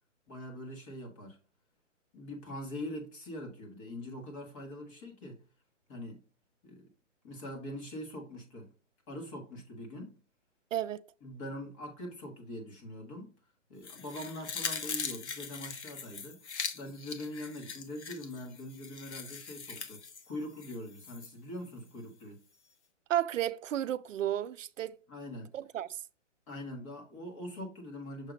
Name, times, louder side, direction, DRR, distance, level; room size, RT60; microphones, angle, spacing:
voice 1, 0.3-1.4 2.1-5.4 5.9-6.2 6.6-6.9 7.2-8.7 9.1-10.2 11.2-13.4 13.7-16.4 16.7-22.4 25.1-25.5 26.5-28.3, left 1 dB, 25° left, 1.5 m, -43 dB
voice 2, 10.7-11.0 23.1-25.0 25.5-25.9, right 11 dB, 80° right, 0.5 m, -32 dB
sound 1, 13.8-21.3 21.7-21.8, left 6 dB, 60° left, 1.0 m, -41 dB
6.7 x 2.8 x 5.0 m
hypercardioid pair, 155°, 37 cm